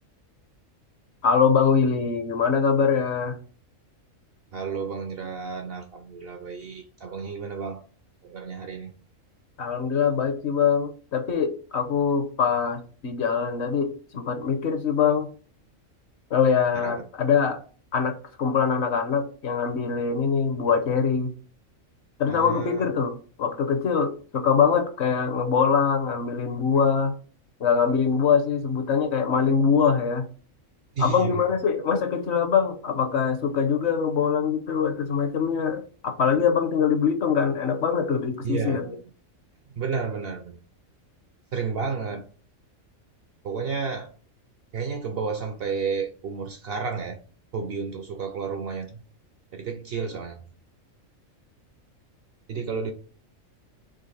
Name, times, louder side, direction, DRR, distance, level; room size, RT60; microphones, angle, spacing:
voice 1, 1.2-3.4 9.6-15.3 16.3-17.6 17.9-21.3 22.2-27.1 27.6-30.3 31.0-38.8, left 6 dB, 60° left, 0.9 m, -23 dB
voice 2, 4.5-7.9 8.2-9.0 16.7-17.0 22.3-22.9 31.0-31.4 38.4-39.0 39.7-40.6 41.5-42.3 43.4-44.1 44.7-47.2 47.5-49.0 49.5-50.4 52.5-52.9, right 5 dB, 65° right, 0.6 m, -31 dB
3.8 x 3.1 x 4.0 m
omnidirectional pair, 1.4 m